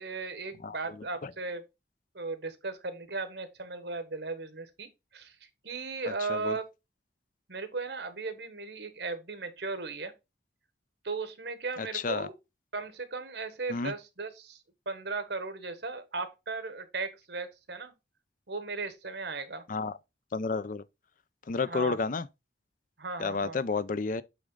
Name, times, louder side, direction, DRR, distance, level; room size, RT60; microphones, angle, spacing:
voice 1, 0.0-1.7 2.1-5.3 5.6-6.6 7.5-10.1 11.0-12.3 12.7-14.6 14.8-17.9 18.5-19.6 21.7-22.0 23.0-23.6, right 3 dB, 70° right, 1.2 m, -36 dB
voice 2, 11.8-12.3 13.7-13.9 19.7-20.0 20.3-20.8 21.5-22.3 23.2-24.2, left 4 dB, 45° left, 0.5 m, -31 dB
8.4 x 3.7 x 3.8 m
head